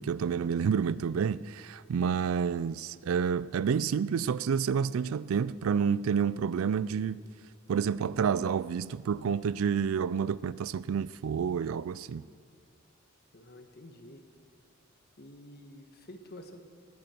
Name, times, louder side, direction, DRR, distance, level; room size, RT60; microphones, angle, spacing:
voice 1, 0.0-7.2 7.7-12.3, right 7 dB, 80° right, 0.4 m, -29 dB
voice 2, 13.3-14.2 15.2-16.6, left 1 dB, 50° left, 1.3 m, -49 dB
20.0 x 12.5 x 4.5 m
head